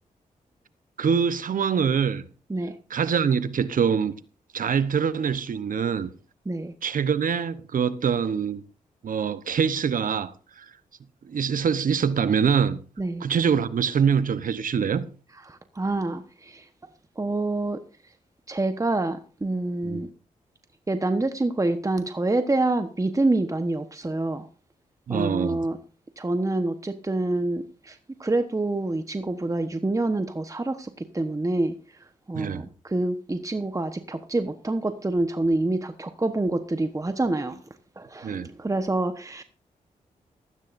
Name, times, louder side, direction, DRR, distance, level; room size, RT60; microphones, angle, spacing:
voice 1, 1.0-2.2 2.9-4.1 4.5-6.1 6.8-8.6 9.0-10.7 11.2-12.8 13.2-15.1 19.8-20.0 25.1-25.6 32.3-32.6 38.2-38.5, right 7 dB, 65° right, 1.0 m, -24 dB
voice 2, 15.5-16.7 17.2-17.8 18.5-20.1 20.9-24.5 25.1-25.8 26.2-31.8 32.3-37.6 38.0-39.4, right 2 dB, 20° right, 1.1 m, -27 dB
15.0 x 14.0 x 2.6 m
supercardioid pair, 45°, 15 cm